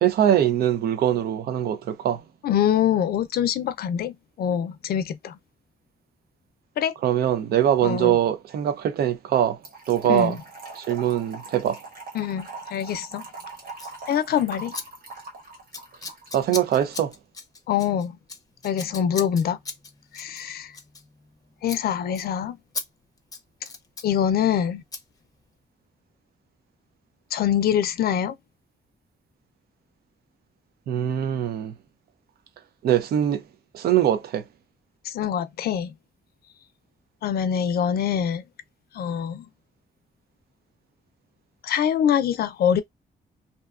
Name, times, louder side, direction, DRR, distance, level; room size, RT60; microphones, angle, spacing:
voice 1, 0.0-2.2 7.0-9.6 9.9-10.4 10.8-11.8 16.3-17.1 30.9-31.7 32.8-33.4 33.7-34.4, right 10 dB, 90° right, 0.5 m, -22 dB
voice 2, 2.4-5.3 6.8-6.9 7.8-8.2 10.1-10.4 12.1-13.3 14.1-14.7 17.7-18.2 18.6-19.6 20.1-20.7 21.6-22.6 24.0-24.8 27.3-28.3 35.0-35.9 37.2-38.4 38.9-39.5 41.6-42.8, left 9 dB, 80° left, 0.5 m, -24 dB
Trickle dribble / Fill (with liquid), 9.6-16.7, right 3 dB, 65° right, 1.2 m, -41 dB
Scissors, 13.7-14.0 14.7-14.8 15.1-15.4 15.7-21.4 21.6-21.8 22.1-22.3 22.7-22.9 23.2-24.1 24.9-25.0, left 4 dB, 25° left, 0.5 m, -37 dB
2.6 x 2.2 x 2.3 m
wide cardioid pair, 135°, 16 cm